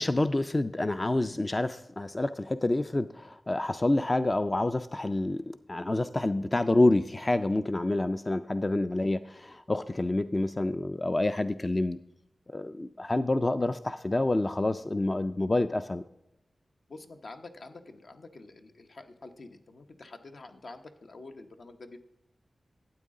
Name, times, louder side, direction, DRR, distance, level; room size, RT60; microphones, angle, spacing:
voice 1, 0.0-12.0 12.5-16.0, left 2 dB, 25° left, 11 dB, 0.3 m, -28 dB
voice 2, 16.9-22.0, left 3 dB, 65° left, 6 dB, 0.8 m, -47 dB
12.5 x 8.4 x 3.7 m, 0.90 s
wide cardioid pair, 105°, 0 cm